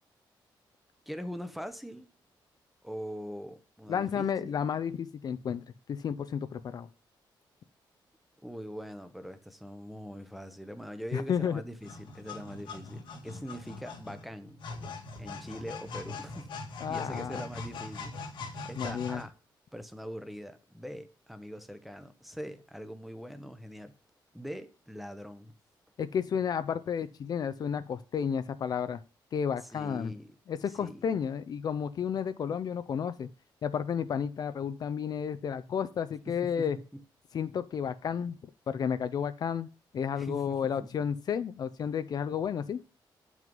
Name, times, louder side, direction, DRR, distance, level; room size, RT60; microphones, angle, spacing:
voice 1, 1.1-2.1 2.8-4.7 8.4-14.6 15.2-16.5 16.9-18.2 18.6-19.3 19.7-23.9 24.3-25.5 29.6-30.4 30.7-31.0 36.3-36.7 36.9-37.0 40.1-40.9, equal, ahead, 0.9 m, -42 dB
voice 2, 3.9-5.6 5.9-6.9 11.1-11.6 16.8-17.4 18.8-19.2 26.0-29.0 29.3-30.1 30.5-33.3 33.6-36.8 37.3-38.4 38.7-39.7 39.9-42.8, left 7 dB, 55° left, 0.6 m, -32 dB
sound 1, 11.8-19.2, left 3 dB, 80° left, 2.2 m, -42 dB
7.5 x 6.2 x 5.3 m
cardioid pair, 135°, 8 cm